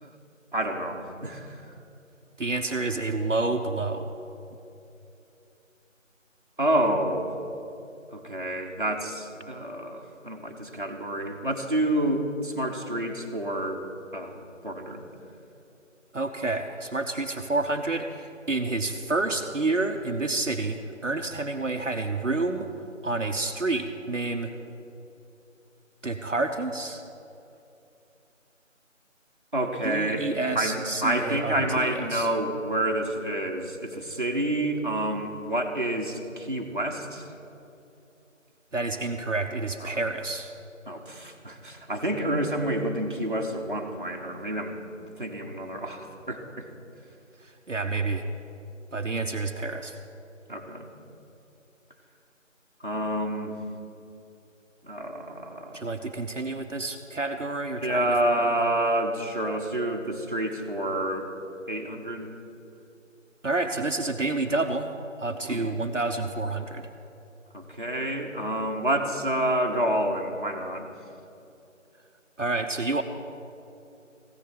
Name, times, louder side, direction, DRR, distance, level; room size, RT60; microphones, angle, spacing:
voice 1, 0.5-1.6 6.6-7.3 8.1-13.8 14.1-14.3 14.6-15.0 29.5-30.3 30.5-37.3 39.8-40.0 40.9-44.8 45.2-46.7 50.5-50.9 52.8-53.6 54.8-55.8 57.8-61.3 61.7-62.3 65.5-65.7 67.5-70.9, right 1 dB, 40° right, 1 dB, 1.2 m, -28 dB
voice 2, 2.4-4.1 16.1-22.7 23.0-24.5 26.0-27.0 29.8-31.8 32.1-32.3 38.7-40.5 47.7-48.3 48.9-50.0 55.7-58.5 63.4-64.9 65.2-66.9 72.4-73.0, right 3 dB, 70° right, 4 dB, 0.9 m, -29 dB
15.0 x 6.3 x 9.8 m, 2.8 s
figure-of-eight pair, 180°, 39 cm